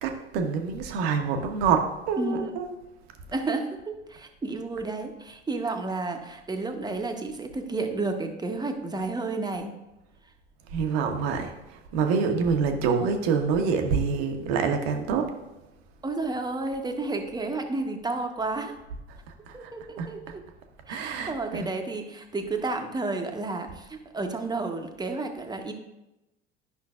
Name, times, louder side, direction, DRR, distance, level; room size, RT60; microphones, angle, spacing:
voice 1, 0.0-2.7 10.7-11.5 11.9-15.3 19.5-19.6 20.0-20.1 20.9-21.7, right 5 dB, 60° right, 5 dB, 1.1 m, -26 dB
voice 2, 2.2-2.5 3.3-9.7 16.0-18.7 19.5-20.2 20.9-25.7, right 3 dB, 10° right, 5 dB, 0.9 m, -31 dB
11.0 x 5.6 x 2.4 m, 0.95 s
hypercardioid pair, 70°, 33 cm